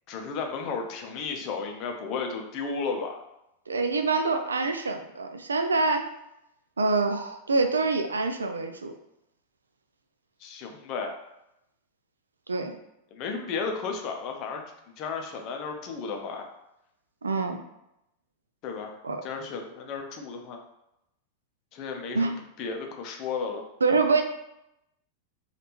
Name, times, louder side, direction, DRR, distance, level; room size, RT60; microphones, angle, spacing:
voice 1, 0.1-3.2 10.4-11.2 13.1-14.6 15.0-16.4 18.6-20.6 21.7-23.6, left 5 dB, 40° left, 3 dB, 0.5 m, -34 dB
voice 2, 3.7-6.1 6.8-8.9 12.5-12.7 17.2-17.6 19.0-19.2 22.1-22.4 23.8-24.2, right 3 dB, 75° right, 6 dB, 0.3 m, -25 dB
3.2 x 2.4 x 2.9 m, 0.85 s
figure-of-eight pair, 90°, 0 cm